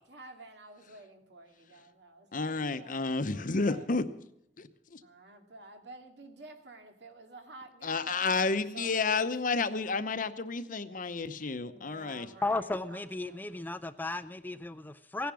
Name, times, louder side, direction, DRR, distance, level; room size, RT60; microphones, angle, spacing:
voice 1, 0.1-3.9 5.0-9.3 11.4-13.4, right 2 dB, 75° right, 2.2 m, -51 dB
voice 2, 2.3-4.0 4.6-5.0 7.8-12.3, left 4 dB, 50° left, 0.8 m, -31 dB
voice 3, 12.4-15.3, left 2 dB, 10° left, 0.5 m, -34 dB
17.0 x 10.5 x 6.2 m
head